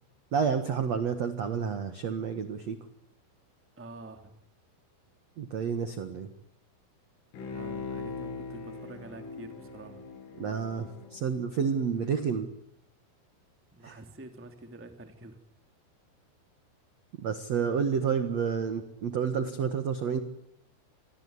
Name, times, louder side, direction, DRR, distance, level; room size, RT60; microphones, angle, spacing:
voice 1, 0.3-2.8 5.4-6.3 10.4-12.5 13.8-13.9 17.2-20.2, right 6 dB, 70° right, 9 dB, 1.6 m, -30 dB
voice 2, 3.8-4.3 7.3-10.0 13.7-15.4, right 2 dB, 5° right, 6 dB, 1.2 m, -47 dB
Bowed string instrument, 7.3-12.0 12.4-12.5, left 4 dB, 85° left, 7.3 m, -41 dB
27.0 x 21.0 x 9.6 m, 0.74 s
omnidirectional pair, 5.6 m